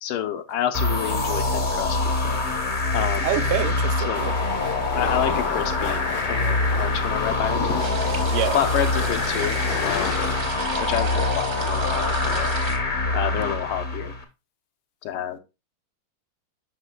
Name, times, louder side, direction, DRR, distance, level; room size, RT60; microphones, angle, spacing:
voice 1, 0.0-2.4 2.9-3.3 4.1-4.4 4.9-6.0 6.3-7.9 8.5-10.4 10.8-12.5 13.1-14.1 15.0-15.4, left 10 dB, 85° left, 8 dB, 1.7 m, -29 dB
sound 1, 0.7-14.2, left 2 dB, 50° left, 0.6 m, -25 dB
voice 2, 3.2-4.3 8.3-8.6, right 10 dB, 80° right, 11 dB, 1.5 m, -26 dB
sound 2, 4.1-10.4, left 7 dB, 65° left, 0.9 m, -32 dB
sound 3, 7.8-12.8, right 4 dB, 55° right, 0.7 m, -34 dB
8.0 x 5.4 x 2.2 m, 0.27 s
omnidirectional pair, 2.3 m